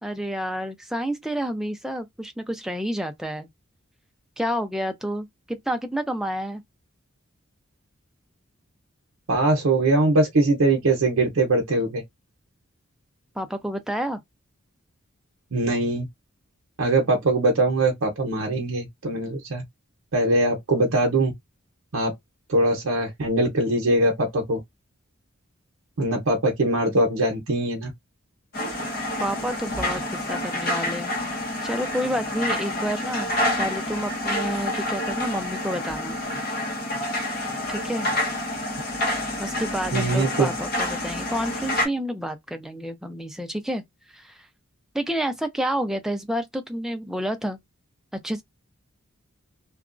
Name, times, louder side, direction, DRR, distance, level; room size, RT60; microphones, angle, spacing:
voice 1, 0.0-3.5 4.4-6.6 13.4-14.2 29.2-31.1 31.4-36.2 37.7-38.1 39.4-43.8 44.1-44.5 44.9-47.6 48.1-48.4, equal, ahead, 0.3 m, -29 dB
voice 2, 9.3-12.0 15.5-16.1 16.8-19.6 20.1-21.3 21.9-22.1 22.5-24.6 26.0-27.9 39.9-40.5, right 2 dB, 80° right, 0.7 m, -22 dB
sound 1, 28.5-41.9, left 1 dB, 45° left, 1.1 m, -28 dB
2.8 x 2.3 x 2.4 m
head